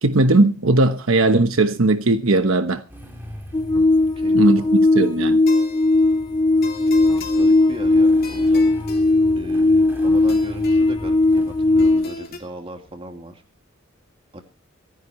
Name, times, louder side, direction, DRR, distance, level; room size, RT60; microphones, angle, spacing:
voice 1, 0.0-2.8 4.3-5.4, right 2 dB, 75° right, 1.1 m, -18 dB
Motorcycle / Engine starting, 2.9-12.0, equal, 10° right, 3.4 m, -39 dB
sound 1, 3.5-12.1, left 2 dB, 20° left, 0.7 m, -18 dB
voice 2, 4.1-4.7 6.8-6.9 7.3-8.8 9.4-13.4 14.3-14.4, right 1 dB, 25° right, 2.3 m, -37 dB
sound 2, 4.2-12.4, left 4 dB, 50° left, 3.0 m, -41 dB
25.5 x 10.5 x 3.1 m
head